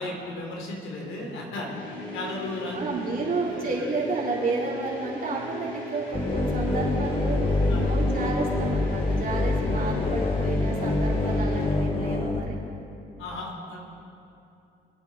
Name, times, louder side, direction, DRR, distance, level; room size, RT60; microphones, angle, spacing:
voice 1, 0.0-1.7 2.1-3.0 7.7-7.9 13.2-13.8, left 1 dB, 85° left, -1 dB, 3.3 m, -34 dB
sound 1, 1.6-11.9, left 2 dB, 70° left, 3.9 m, -38 dB
voice 2, 2.7-12.6, right 3 dB, 45° right, -4 dB, 4.1 m, -31 dB
sound 2, 6.1-12.4, left 2 dB, 25° left, 1.3 m, -25 dB
26.0 x 8.9 x 4.3 m, 2.7 s
cardioid pair, 90°, 20 cm